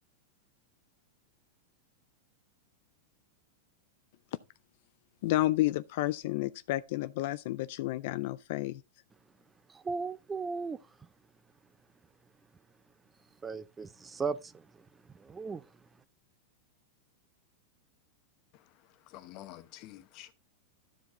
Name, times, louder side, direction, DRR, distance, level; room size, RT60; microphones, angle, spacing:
voice 1, 5.2-8.8, left 16 dB, 60° left, 0.3 m, -31 dB
voice 2, 9.7-10.8 13.4-14.7 15.1-15.6, right 4 dB, 15° right, 0.4 m, -36 dB
voice 3, 18.5-20.3, left 14 dB, 40° left, 0.8 m, -50 dB
12.5 x 4.8 x 3.6 m
supercardioid pair, 145°, 0 cm